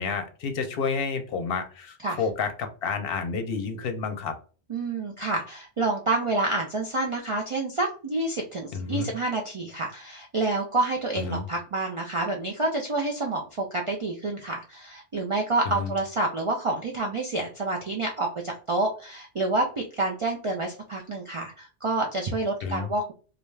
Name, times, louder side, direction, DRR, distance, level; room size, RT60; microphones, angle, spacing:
voice 1, 0.0-2.5 2.8-4.3 8.7-9.1 11.2-11.4 15.7-15.9 22.6-22.9, left 5 dB, 70° left, 7 dB, 0.7 m, -30 dB
voice 2, 4.7-23.1, right 2 dB, 55° right, 0 dB, 0.3 m, -28 dB
2.4 x 2.2 x 3.1 m, 0.38 s
omnidirectional pair, 1.1 m